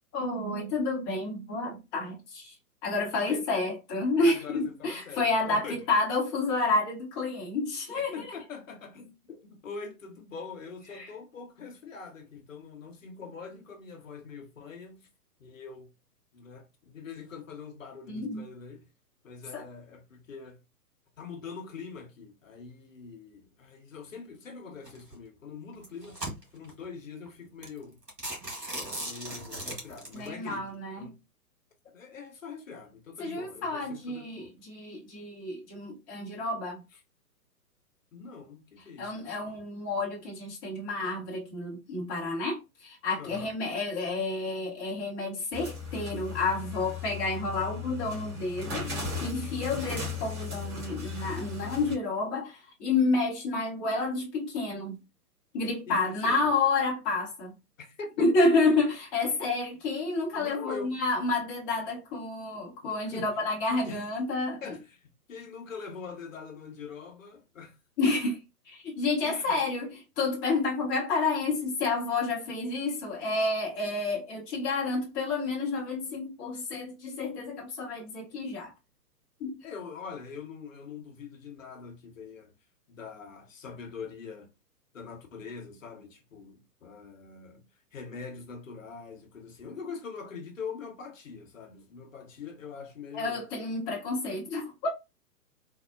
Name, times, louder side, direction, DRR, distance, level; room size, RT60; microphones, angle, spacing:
voice 1, 0.1-2.5 2.8-8.3 10.9-11.1 18.1-18.5 19.5-19.6 30.1-31.1 33.2-36.8 39.0-48.9 49.2-55.0 55.5-57.5 58.2-64.6 68.0-68.4 68.7-78.7 79.4-79.6 93.1-94.9, left 3 dB, 15° left, 0.7 m, -30 dB
voice 2, 4.2-5.8 7.9-15.1 15.4-15.9 16.3-18.9 19.2-20.6 21.2-26.3 26.5-28.0 28.8-31.2 31.9-34.6 38.1-39.6 43.2-43.5 55.9-56.5 57.8-58.2 60.3-61.0 62.8-63.4 63.8-64.1 64.6-67.8 68.0-68.2 69.2-69.6 79.6-82.5 82.9-84.5 84.9-87.6 87.9-93.4, left 5 dB, 55° left, 0.9 m, -43 dB
sound 1, 24.8-25.1 25.7-26.7 27.3-27.4 27.6-27.8 28.1-30.3, right 1 dB, 90° right, 1.6 m, -37 dB
sound 2, 45.5-52.0, left 5 dB, 45° right, 1.6 m, -37 dB
3.5 x 2.0 x 2.2 m
figure-of-eight pair, 125°, 47 cm